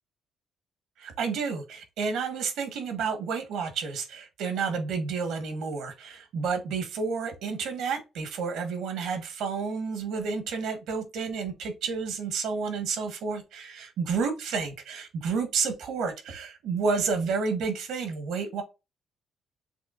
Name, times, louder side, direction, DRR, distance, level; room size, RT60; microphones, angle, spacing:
voice 1, 1.0-18.6, right 5 dB, 80° right, 1.3 m, -30 dB
6.9 x 3.0 x 2.5 m
cardioid pair, 135°, 0 cm